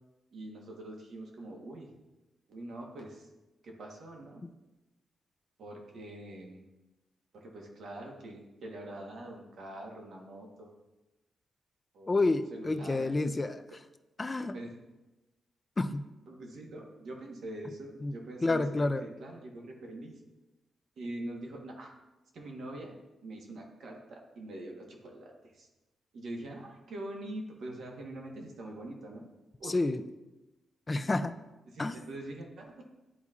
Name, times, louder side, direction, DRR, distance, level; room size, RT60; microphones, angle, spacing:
voice 1, 0.3-1.9 2.5-3.3 3.6-4.4 5.6-6.6 7.3-10.7 11.9-12.2 12.5-13.1 14.5-14.7 16.3-20.2 21.0-21.9 22.3-22.9 23.2-25.7 26.1-29.3 29.6-29.8 31.7-32.7, right 1 dB, 65° right, 1 dB, 1.2 m, -44 dB
voice 2, 12.1-13.6 14.2-14.5 15.8-16.0 18.0-18.1 18.4-19.0 29.7-30.0 30.9-31.3 31.8-32.0, left 2 dB, 20° left, 8 dB, 0.3 m, -29 dB
11.0 x 4.1 x 2.4 m, 1.0 s
wide cardioid pair, 140°, 0 cm